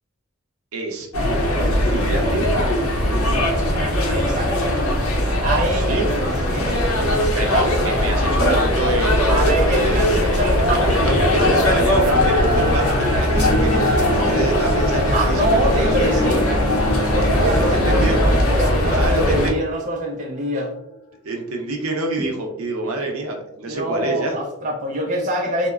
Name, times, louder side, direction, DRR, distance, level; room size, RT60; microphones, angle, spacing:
voice 1, 0.7-1.1 1.8-2.5 5.7-6.0 7.3-10.0 10.7-16.6 17.3-17.5 17.7-18.2 18.9-19.6 21.2-24.4, right 2 dB, 80° right, 2 dB, 0.6 m, -27 dB
sound 1, 1.1-19.5, left 1 dB, 80° left, 0.6 m, -19 dB
voice 2, 4.1-4.8 5.1-5.9 6.5-6.7 7.0-7.8 9.3-11.1 11.4-11.8 15.1-16.4 17.1-20.7 23.7-25.7, right 1 dB, 35° right, -1 dB, 0.4 m, -25 dB
sound 2, 11.4-21.5, left 2 dB, 40° left, 0.6 m, -32 dB
sound 3, 13.3-19.4, equal, 10° left, 1.0 m, -28 dB
3.0 x 2.1 x 2.3 m, 0.84 s
head